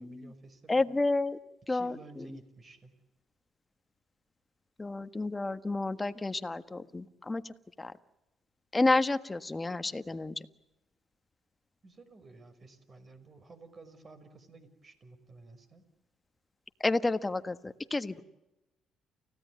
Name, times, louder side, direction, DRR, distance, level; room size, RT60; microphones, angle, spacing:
voice 1, 0.0-0.9 1.7-2.9 11.8-15.8, right 3 dB, 35° right, 9 dB, 5.6 m, -53 dB
voice 2, 0.7-1.4 1.7-2.3 4.8-7.9 8.7-10.3 16.8-18.2, left 2 dB, 20° left, 11 dB, 1.5 m, -30 dB
29.5 x 16.5 x 9.5 m, 0.94 s
cardioid pair, 85°, 0 cm